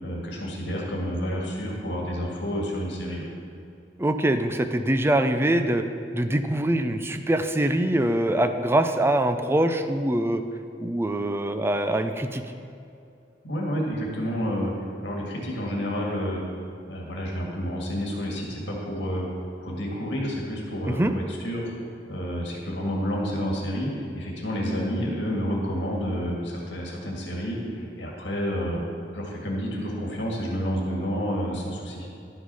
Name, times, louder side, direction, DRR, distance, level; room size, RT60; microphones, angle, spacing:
voice 1, 0.0-3.2 13.4-14.7 15.0-16.4 16.9-19.3 19.6-21.7 22.1-28.8 29.1-32.1, equal, 70° left, -2 dB, 1.9 m, -29 dB
voice 2, 4.0-5.8 6.1-10.4 10.8-12.4 20.9-21.1, right 1 dB, 15° right, 8 dB, 0.5 m, -23 dB
11.5 x 6.1 x 5.5 m, 2.5 s
head